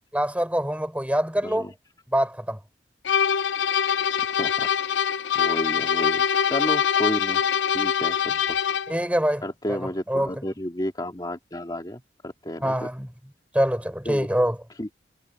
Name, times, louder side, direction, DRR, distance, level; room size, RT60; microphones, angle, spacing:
voice 1, 0.1-1.7 2.1-2.6 8.9-9.4 9.7-10.3 12.6-13.1 13.5-14.6, equal, 10° right, 5.1 m, -25 dB
voice 2, 1.4-1.7 4.3-4.7 5.3-7.4 7.7-8.6 9.4-12.9 14.1-14.3 14.8-14.9, left 1 dB, 25° left, 2.3 m, -32 dB
sound 1, 3.1-9.0, left 8 dB, 90° left, 0.6 m, -23 dB
head